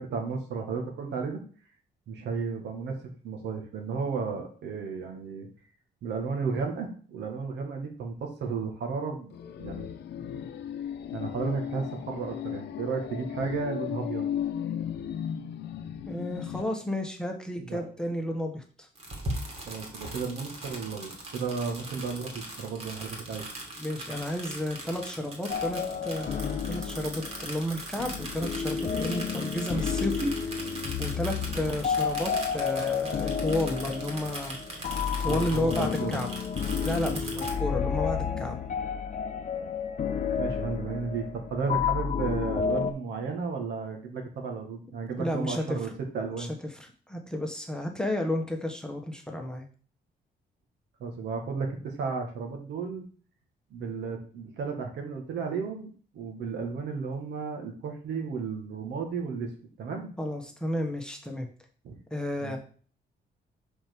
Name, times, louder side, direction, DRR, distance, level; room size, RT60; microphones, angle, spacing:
voice 1, 0.0-1.4 2.1-2.9 3.2-5.5 6.0-9.3 9.6-9.9 10.2-10.4 10.7-10.8 11.1-14.3 17.6-17.8 19.6-23.4 35.2-36.2 40.4-46.5 51.0-53.0 53.7-55.9 56.1-59.5 59.8-60.1 61.8-62.0 62.4-62.5, right 5 dB, 85° right, 3 dB, 1.8 m, -33 dB
sound 1, 9.3-16.6, left 9 dB, 80° left, 0.7 m, -35 dB
voice 2, 16.1-18.9 23.8-30.6 31.0-34.9 35.2-36.3 36.8-38.6 45.2-45.8 46.4-46.5 47.1-49.7 60.2-61.5 62.1-62.6, left 1 dB, 5° left, 2 dB, 1.2 m, -32 dB
sound 2, 18.9-37.5, right 1 dB, 40° right, 2.3 m, -40 dB
sound 3, 25.5-42.9, left 7 dB, 45° left, 0.8 m, -31 dB
5.3 x 4.6 x 6.1 m, 0.42 s
cardioid pair, 135°, 18 cm